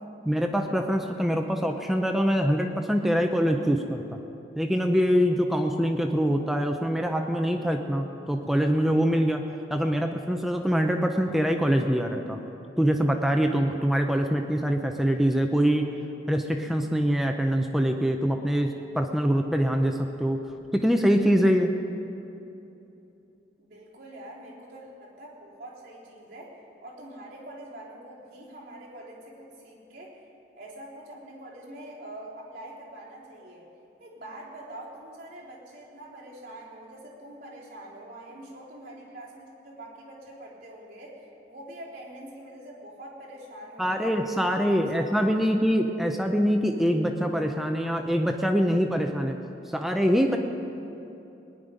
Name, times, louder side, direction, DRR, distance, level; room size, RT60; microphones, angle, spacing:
voice 1, 0.3-4.2 4.6-9.4 9.7-12.4 12.8-15.9 16.3-20.4 20.7-21.7 43.8-49.4 49.7-50.4, equal, ahead, 3 dB, 0.6 m, -24 dB
voice 2, 23.6-26.6 26.8-30.2 30.6-33.7 34.0-44.2 44.5-45.6, right 1 dB, 50° right, -7 dB, 3.6 m, -44 dB
19.0 x 10.5 x 5.2 m, 2.9 s
head